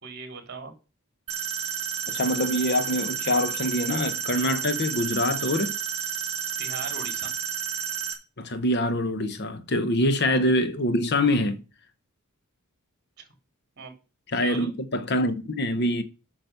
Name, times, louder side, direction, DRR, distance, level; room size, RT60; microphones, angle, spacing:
voice 1, 0.0-0.7 6.6-7.3 13.2-13.3 13.8-13.9 14.3-14.7, right 4 dB, 50° right, 3.4 m, -38 dB
sound 1, 1.3-8.1, right 8 dB, 30° right, 2.2 m, -31 dB
voice 2, 2.1-5.8 8.4-11.6 14.3-16.0, left 1 dB, 50° left, 0.9 m, -25 dB
8.8 x 6.0 x 6.8 m
head